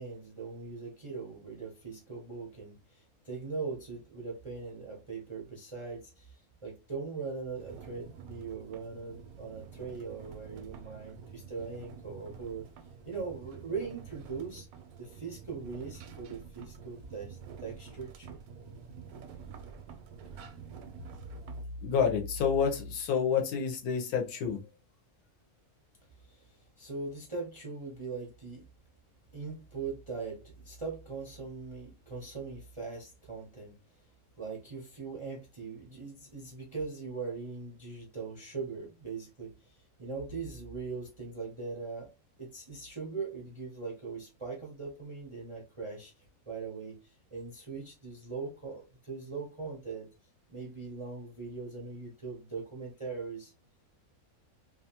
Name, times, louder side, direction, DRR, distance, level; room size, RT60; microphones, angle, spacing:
voice 1, 0.0-12.6 13.0-14.7 15.0-18.8 26.2-28.7 29.3-33.7 34.4-42.1 42.4-50.1 50.5-53.5, right 4 dB, 40° right, 0.4 m, -41 dB
sound 1, 7.6-21.6, right 6 dB, 80° right, 1.0 m, -48 dB
voice 2, 21.8-24.6, left 7 dB, 80° left, 1.1 m, -28 dB
2.7 x 2.3 x 2.7 m
omnidirectional pair, 1.6 m